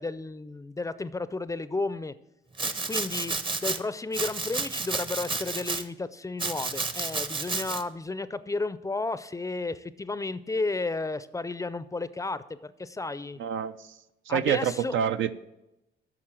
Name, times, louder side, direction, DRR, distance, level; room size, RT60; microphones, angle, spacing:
voice 1, 0.0-2.1 2.9-13.4 14.3-15.0, left 3 dB, 15° left, 15 dB, 0.4 m, -33 dB
Domestic sounds home sounds, 2.6-3.8 4.1-5.8 6.4-7.8, right 3 dB, 25° right, 0.7 m, -31 dB
voice 2, 13.4-13.9 14.3-15.3, right 9 dB, 80° right, 11 dB, 0.5 m, -27 dB
8.8 x 6.3 x 7.5 m, 0.92 s
cardioid pair, 90°, 20 cm